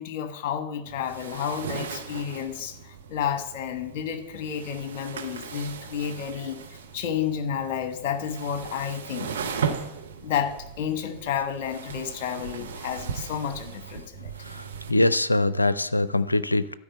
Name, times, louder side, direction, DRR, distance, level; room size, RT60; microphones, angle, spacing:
voice 1, 0.0-6.6 6.9-9.4 10.2-14.3, left 8 dB, 45° left, 8 dB, 1.4 m, -31 dB
sound 1, 0.8-14.9, right 6 dB, 65° right, 1.1 m, -37 dB
voice 2, 14.5-16.7, left 2 dB, 85° left, 16 dB, 0.4 m, -23 dB
12.0 x 5.1 x 7.9 m, 0.83 s
figure-of-eight pair, 90°, 0 cm